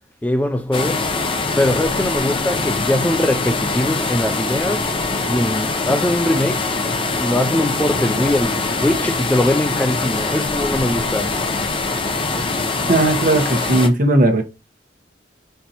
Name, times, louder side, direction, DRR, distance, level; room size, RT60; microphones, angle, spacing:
voice 1, 0.2-1.1 1.6-4.9 5.3-6.7 7.2-11.4, left 1 dB, 10° left, 0.3 m, -21 dB
sound 1, 0.7-13.9, left 3 dB, 30° left, 0.7 m, -23 dB
voice 2, 12.9-14.4, right 2 dB, 50° right, 1.1 m, -16 dB
4.5 x 4.0 x 2.8 m
head